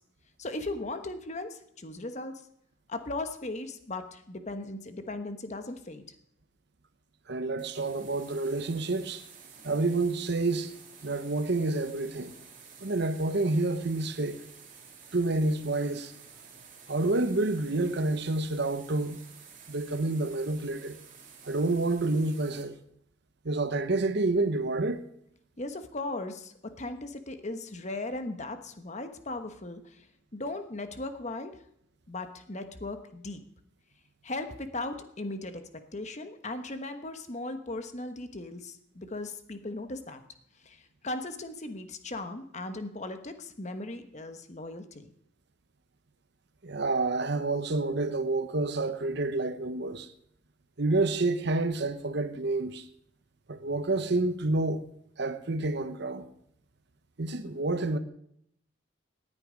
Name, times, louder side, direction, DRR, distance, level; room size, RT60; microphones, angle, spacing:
voice 1, 0.4-2.3 2.9-6.0 25.6-30.1 30.3-31.5 32.1-33.4 34.2-35.6 35.9-40.2 40.6-45.1, left 2 dB, 35° left, 1.2 m, -37 dB
voice 2, 7.3-9.2 9.6-10.7 11.0-12.3 12.8-14.4 15.1-16.1 16.9-19.2 19.7-21.0 21.4-22.8 23.4-25.0 46.6-50.1 50.8-52.9 53.5-54.8 55.2-56.3 57.2-58.0, right 2 dB, 55° right, 0.9 m, -28 dB
sound 1, 7.6-22.6, right 6 dB, 40° right, 2.6 m, -51 dB
18.5 x 9.9 x 5.1 m
head